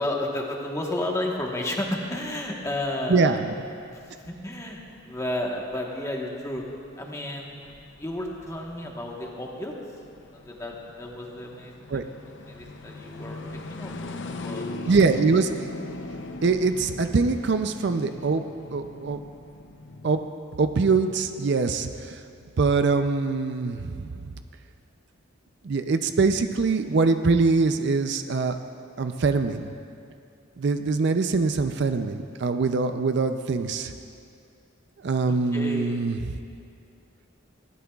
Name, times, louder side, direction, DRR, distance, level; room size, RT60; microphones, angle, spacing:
voice 1, 0.0-3.5 3.9-6.6 7.0-7.5 8.0-9.7 10.3-13.4 13.7-15.1 35.2-36.0, left 1 dB, 15° left, -1 dB, 1.2 m, -32 dB
sound 1, 1.5-20.3, left 2 dB, 60° left, 0.6 m, -41 dB
voice 2, 3.1-3.5 11.9-12.1 14.9-15.5 16.4-18.4 18.7-19.2 20.0-20.2 20.6-22.2 22.6-24.3 25.6-28.6 29.0-29.7 30.6-33.9 35.0-36.2, right 4 dB, 55° right, 8 dB, 0.5 m, -23 dB
20.0 x 15.0 x 2.4 m, 2.4 s
head